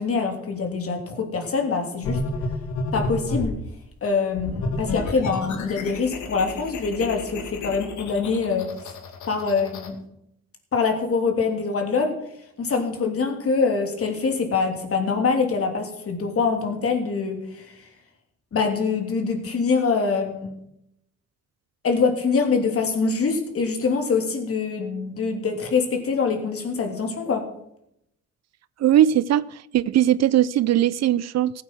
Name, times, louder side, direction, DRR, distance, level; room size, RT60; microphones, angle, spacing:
voice 1, 0.0-2.2 2.9-3.5 4.0-8.7 9.3-10.0 10.7-12.2 12.6-17.7 18.5-20.5 21.8-27.4, left 4 dB, 50° left, 3.1 m, -24 dB
sound 1, 2.0-3.6 4.3-9.9, left 2 dB, 70° left, 2.2 m, -31 dB
voice 2, 28.8-29.4 29.7-31.6, right 11 dB, 60° right, 0.5 m, -19 dB
15.5 x 8.8 x 6.2 m
cardioid pair, 90°, 30 cm